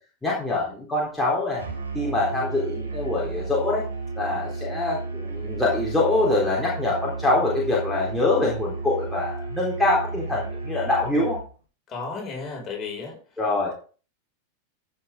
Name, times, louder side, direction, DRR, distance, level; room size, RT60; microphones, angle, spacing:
voice 1, 0.2-1.6 1.9-3.8 4.2-11.4 13.4-13.7, left 2 dB, 5° left, -6 dB, 3.7 m, -24 dB
Musical instrument, 1.6-11.5, right 3 dB, 75° right, 2.8 m, -33 dB
voice 2, 11.9-13.2, left 4 dB, 25° left, 0 dB, 5.7 m, -33 dB
15.0 x 7.0 x 3.8 m, 0.38 s
figure-of-eight pair, 90°, 0 cm